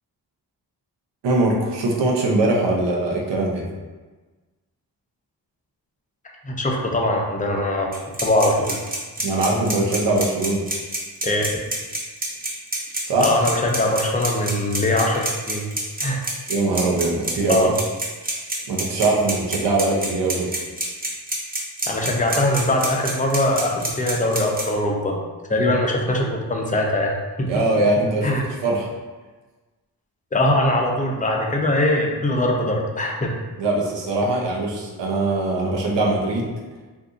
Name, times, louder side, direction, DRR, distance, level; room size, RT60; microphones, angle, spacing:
voice 1, 1.2-3.7 9.2-10.6 13.0-13.3 16.5-17.7 18.7-20.5 27.5-28.9 33.6-36.5, right 2 dB, 80° right, -1 dB, 0.8 m, -21 dB
voice 2, 6.4-7.9 8.2-8.8 11.2-11.6 13.2-15.7 16.0-16.3 17.5-17.7 21.9-25.2 25.5-27.5 28.2-28.4 30.3-33.3, left 1 dB, 20° left, 0 dB, 0.6 m, -21 dB
sound 1, 7.9-24.6, right 2 dB, 20° right, 0.9 m, -27 dB
2.6 x 2.5 x 3.6 m, 1.3 s
cardioid pair, 55°, 43 cm